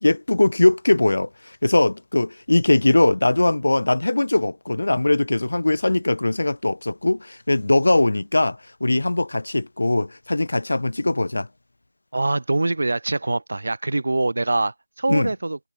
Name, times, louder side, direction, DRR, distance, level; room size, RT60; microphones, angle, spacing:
voice 1, 0.0-11.5 15.1-15.3, left 2 dB, 50° left, 1.9 m, -20 dB
voice 2, 12.1-15.7, right 2 dB, 45° right, 1.4 m, -24 dB
figure-of-eight pair, 165°, 0 cm